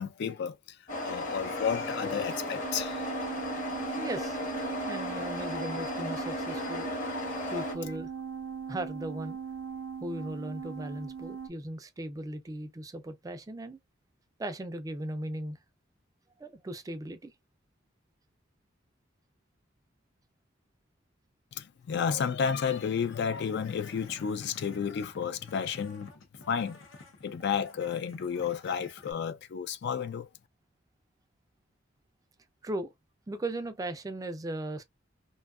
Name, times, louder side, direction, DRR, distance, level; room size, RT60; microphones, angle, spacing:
voice 1, 0.0-3.0 4.8-5.3 7.0-7.6 21.5-26.1 26.5-26.8 27.2-30.3, left 7 dB, 60° left, 0.3 m, -32 dB
sound 1, 0.9-7.7, left 1 dB, 40° left, 1.0 m, -35 dB
sound 2, 2.6-11.5, right 6 dB, 90° right, 0.4 m, -39 dB
voice 2, 3.9-4.4 4.9-7.2 7.5-8.1 8.7-9.4 10.0-13.8 14.4-15.6 16.4-17.3 32.6-32.9 33.3-34.8, right 1 dB, 20° right, 0.3 m, -37 dB
sound 3, 22.4-29.1, left 3 dB, 90° left, 0.7 m, -51 dB
2.6 x 2.3 x 2.3 m
head